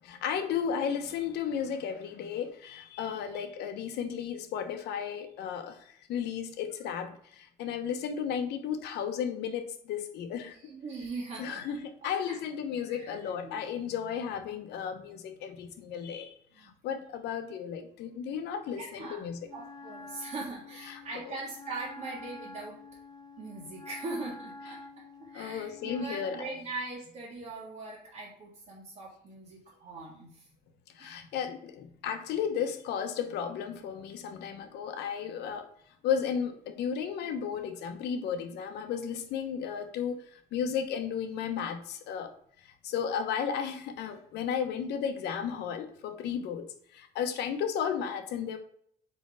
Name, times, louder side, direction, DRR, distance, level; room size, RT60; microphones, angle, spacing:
voice 1, 0.0-10.6 11.4-19.5 20.9-21.0 25.3-26.5 30.9-35.7 36.0-42.3 42.6-48.6, left 7 dB, 80° left, 6 dB, 1.0 m, -34 dB
voice 2, 10.5-11.6 12.0-12.4 12.9-13.7 16.5-16.7 18.8-22.8 23.4-24.8 25.2-30.5 31.0-31.3, right 3 dB, 45° right, -6 dB, 1.7 m, -41 dB
Wind instrument woodwind instrument, 19.5-26.7, left 2 dB, 25° left, 0.6 m, -48 dB
4.5 x 4.4 x 4.8 m, 0.66 s
cardioid pair, 110°, 17 cm